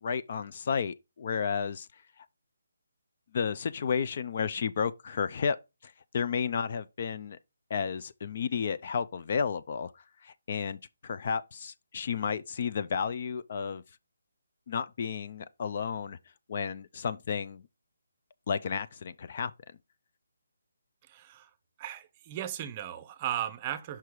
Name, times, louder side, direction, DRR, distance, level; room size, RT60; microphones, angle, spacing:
voice 1, 0.0-1.9 3.3-5.6 5.8-7.4 7.7-9.9 10.2-13.8 14.7-16.2 16.5-17.6 18.5-19.5, left 6 dB, 45° left, 0.4 m, -32 dB
voice 2, 21.1-21.5 21.8-24.0, right 11 dB, 25° right, 0.6 m, -36 dB
5.8 x 4.7 x 4.6 m
hypercardioid pair, 155°, 0 cm